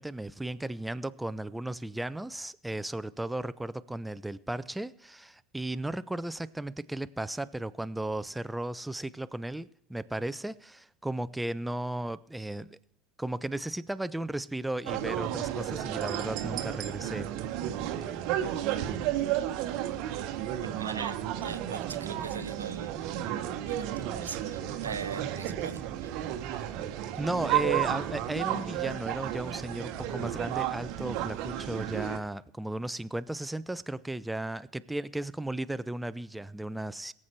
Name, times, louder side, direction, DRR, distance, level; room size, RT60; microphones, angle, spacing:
voice 1, 0.0-12.8 13.2-17.3 27.0-37.1, right 1 dB, 5° right, 0.5 m, -35 dB
sound 1, 14.9-32.2, right 11 dB, 55° right, 1.0 m, -32 dB
voice 2, 20.5-22.9 23.6-26.1, right 5 dB, 85° right, 0.4 m, -41 dB
22.0 x 7.4 x 3.3 m
figure-of-eight pair, 70°, 0 cm